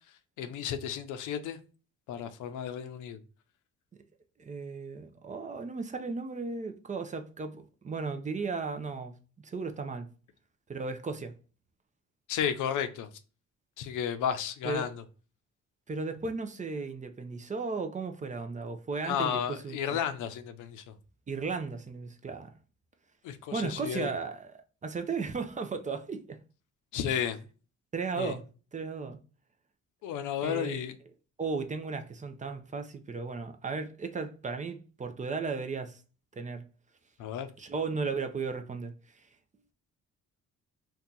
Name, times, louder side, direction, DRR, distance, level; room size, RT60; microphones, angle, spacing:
voice 1, 0.4-1.6 2.1-3.2 12.3-13.1 13.8-15.0 19.0-20.8 23.2-24.1 26.9-27.5 28.2-28.3 30.0-30.9 37.2-37.5, left 8 dB, 85° left, 0.6 m, -33 dB
voice 2, 4.4-9.1 9.4-10.1 10.7-11.3 14.6-14.9 15.9-20.0 21.3-22.5 23.5-24.5 24.8-26.4 27.9-28.4 28.7-29.2 30.4-30.8 31.4-36.0 36.4-36.7 37.6-38.9, right 4 dB, 25° right, 0.5 m, -35 dB
2.7 x 2.3 x 3.7 m
cardioid pair, 90°, 30 cm